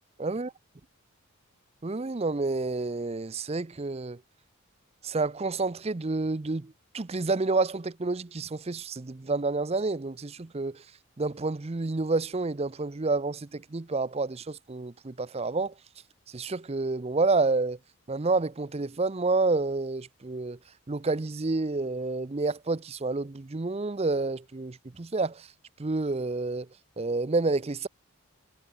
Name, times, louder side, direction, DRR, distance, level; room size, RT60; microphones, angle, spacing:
voice 1, 0.2-0.5 1.8-4.2 5.0-10.8 11.2-15.7 16.3-17.8 18.1-20.6 20.9-25.5 25.8-26.7 27.0-27.9, right 3 dB, 30° right, 0.5 m, -29 dB
head